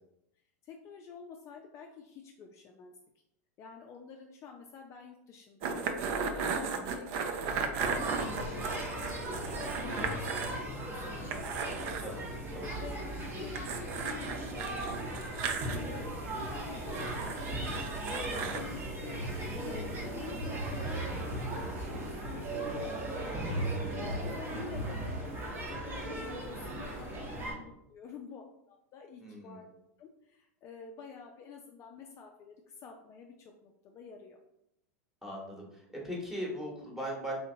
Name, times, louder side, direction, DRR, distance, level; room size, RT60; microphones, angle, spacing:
voice 1, 0.6-3.0 3.6-5.8 6.3-12.2 12.7-22.9 23.2-23.6 24.1-29.7 30.0-34.4, left 6 dB, 35° left, 2 dB, 0.4 m, -49 dB
sound 1, 5.6-10.6 10.9-11.0 11.3-12.1 13.6-15.8 16.9-18.6, right 5 dB, 55° right, 0.5 m, -35 dB
sound 2, 7.8-27.5, right 1 dB, 25° right, 0.9 m, -38 dB
sound 3, 8.0-25.2, right 1 dB, 75° right, 0.9 m, -42 dB
voice 2, 29.2-29.6 35.2-37.3, equal, 5° right, -3 dB, 1.1 m, -39 dB
3.4 x 2.8 x 2.7 m, 0.80 s
hypercardioid pair, 110°, 8 cm